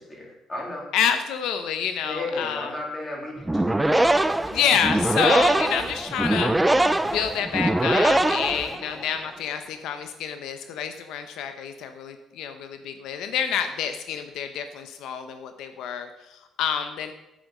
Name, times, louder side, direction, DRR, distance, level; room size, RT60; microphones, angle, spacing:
voice 1, 0.0-0.9 2.0-3.7, left 2 dB, 20° left, -2 dB, 3.2 m, -34 dB
voice 2, 0.9-2.7 4.5-6.6 7.1-17.1, left 8 dB, 80° left, 8 dB, 0.8 m, -28 dB
sound 1, 3.4-9.1, right 1 dB, 10° right, 0.4 m, -22 dB
9.2 x 8.5 x 6.2 m, 0.95 s
cardioid pair, 145°, 0 cm